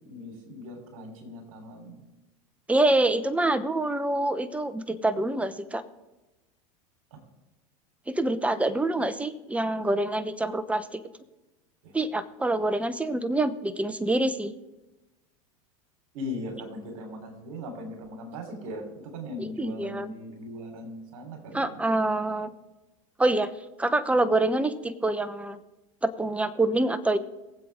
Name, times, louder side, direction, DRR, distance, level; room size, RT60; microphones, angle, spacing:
voice 1, 0.0-2.0 11.8-12.0 16.1-22.2, left 1 dB, 65° right, 3 dB, 3.7 m, -39 dB
voice 2, 2.7-5.8 8.1-11.0 11.9-14.5 19.4-20.1 21.5-22.5 23.2-23.5 23.8-25.6 26.0-27.2, right 2 dB, 5° right, 13 dB, 0.9 m, -26 dB
22.5 x 7.8 x 3.6 m, 1.0 s
hypercardioid pair, 90°, 17 cm